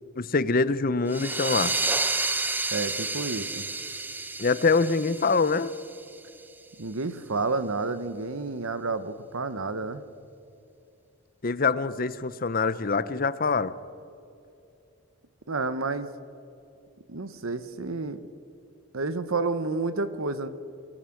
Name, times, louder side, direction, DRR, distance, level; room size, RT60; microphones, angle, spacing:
voice 1, 0.2-1.7 4.4-5.7 11.4-13.7, left 4 dB, 40° left, 15 dB, 0.7 m, -24 dB
sound 1, 1.1-6.4, right 3 dB, 10° right, 0.7 m, -30 dB
voice 2, 2.7-3.7 6.8-10.0 15.5-16.1 17.1-18.3 18.9-20.5, right 3 dB, 75° right, 13 dB, 1.1 m, -30 dB
24.0 x 17.0 x 7.8 m, 2.7 s
head